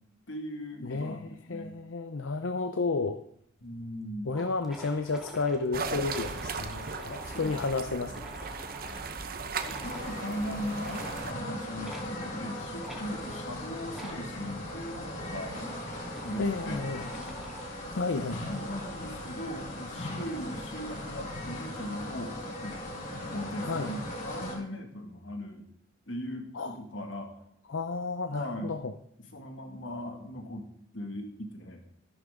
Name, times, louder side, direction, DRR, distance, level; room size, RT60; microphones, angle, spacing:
voice 1, 0.3-1.7 3.6-4.3 7.3-7.5 9.6-15.5 16.2-16.9 18.4-22.3 22.6-22.8 23.3-25.7 26.1-27.4 28.3-28.8 29.3-30.7 30.9-31.8, equal, 70° left, 3 dB, 2.1 m, -39 dB
voice 2, 0.8-3.2 4.3-8.1 16.4-17.1 18.0-18.4 23.6-23.9 26.5-26.8 27.7-28.9, left 3 dB, 90° left, 8 dB, 0.7 m, -32 dB
sound 1, 3.6-3.7 4.0-4.1 4.3-9.1 9.6-10.1 10.8-11.3 11.8-12.1 12.8-13.0 13.9-14.2 15.0-17.8, right 1 dB, ahead, 1.8 m, -47 dB
sound 2, 5.7-11.3, right 4 dB, 50° right, 0.8 m, -37 dB
sound 3, 9.8-24.5, left 1 dB, 40° left, 4.8 m, -38 dB
13.0 x 11.0 x 3.8 m, 0.70 s
head